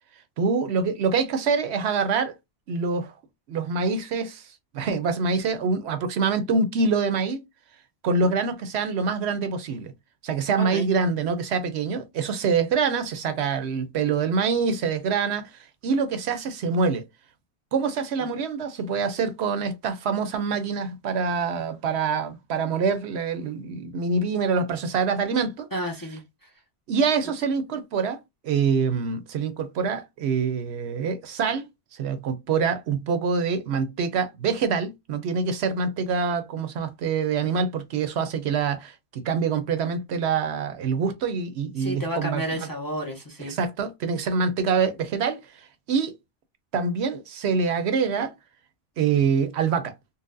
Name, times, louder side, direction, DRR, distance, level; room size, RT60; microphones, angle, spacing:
voice 1, 0.4-2.3 2.7-3.2 3.5-7.4 8.0-9.9 10.2-17.0 17.7-25.7 26.9-28.2 28.4-31.6 31.9-42.7 43.5-46.1 46.7-48.3 49.0-49.9, right 5 dB, 70° right, 0.8 m, -25 dB
voice 2, 25.7-26.5 41.8-43.6, equal, 25° left, 0.5 m, -31 dB
3.9 x 2.1 x 2.5 m
omnidirectional pair, 1.2 m